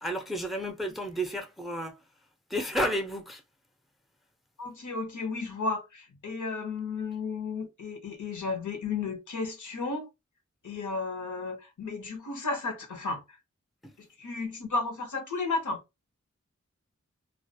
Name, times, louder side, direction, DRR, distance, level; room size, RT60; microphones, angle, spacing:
voice 1, 0.0-2.0 2.5-3.4 13.8-13.9, equal, ahead, 0.5 m, -31 dB
voice 2, 4.6-10.1 10.6-13.4 14.0-15.8, left 3 dB, 80° left, 0.7 m, -33 dB
2.3 x 2.1 x 2.6 m
wide cardioid pair, 50°, 29 cm